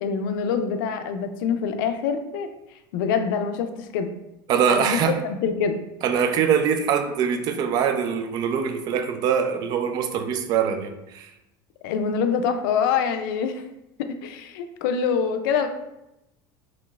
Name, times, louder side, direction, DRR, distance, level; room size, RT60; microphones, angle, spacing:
voice 1, 0.0-2.5 2.9-4.1 4.7-5.8 11.8-13.6 14.2-15.7, left 6 dB, 85° left, 7 dB, 0.4 m, -25 dB
voice 2, 4.5-5.2 6.0-11.3, right 7 dB, 40° right, 7 dB, 0.4 m, -23 dB
3.8 x 3.0 x 2.4 m, 0.90 s
cardioid pair, 155°, 11 cm